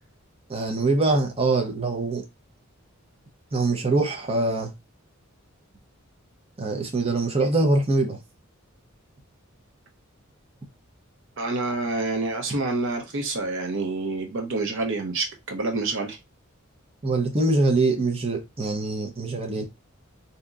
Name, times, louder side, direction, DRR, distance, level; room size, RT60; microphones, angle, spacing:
voice 1, 0.5-2.2 3.5-4.7 6.6-8.2 17.0-19.6, right 2 dB, 30° right, 0.7 m, -23 dB
voice 2, 11.4-16.2, right 3 dB, 65° right, 0.7 m, -27 dB
3.9 x 2.8 x 2.4 m
head